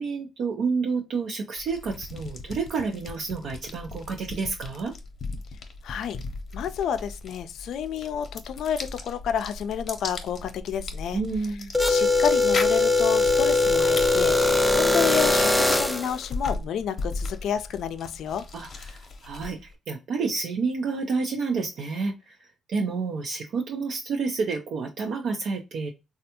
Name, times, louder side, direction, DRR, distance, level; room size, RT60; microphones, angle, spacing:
voice 1, 0.0-4.9 11.1-11.7 18.5-22.4 22.7-25.9, right 4 dB, 70° right, 0.6 m, -29 dB
sound 1, 1.6-19.7, left 3 dB, 50° left, 0.7 m, -38 dB
voice 2, 5.8-6.2 6.5-11.2 11.9-18.4, left 8 dB, 75° left, 0.4 m, -30 dB
sound 2, 11.7-16.2, left 2 dB, ahead, 0.5 m, -21 dB
3.3 x 2.3 x 2.8 m
cardioid pair, 90°, 0 cm